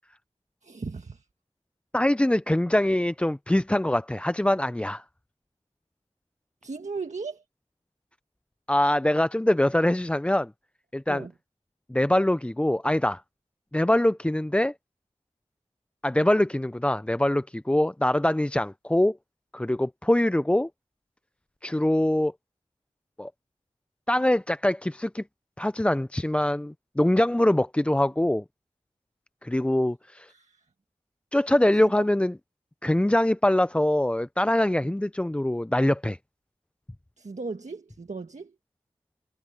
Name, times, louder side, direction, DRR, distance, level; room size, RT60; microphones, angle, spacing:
voice 1, 0.6-1.3 6.6-7.4 11.1-11.3 30.3-30.6 31.8-32.1 37.2-38.5, right 4 dB, 70° right, 1.6 m, -37 dB
voice 2, 1.9-5.0 8.7-10.5 10.9-11.2 11.9-13.2 13.7-14.7 16.0-19.2 19.5-20.7 21.6-22.3 23.2-23.3 24.1-25.2 25.6-28.4 29.4-30.3 31.3-32.3 32.8-36.2, left 1 dB, 10° left, 0.4 m, -23 dB
wide cardioid pair, 65°, 13 cm